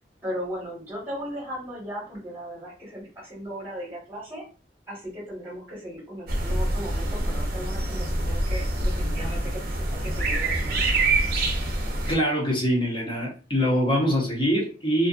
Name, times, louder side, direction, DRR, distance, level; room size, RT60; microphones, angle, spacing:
voice 1, 0.2-4.4 4.9-10.9, equal, 10° right, 1.2 m, -37 dB
sound 1, 6.3-12.1, right 2 dB, 55° right, 0.6 m, -26 dB
voice 2, 12.1-15.1, equal, 30° left, 0.9 m, -24 dB
2.6 x 2.4 x 2.4 m
head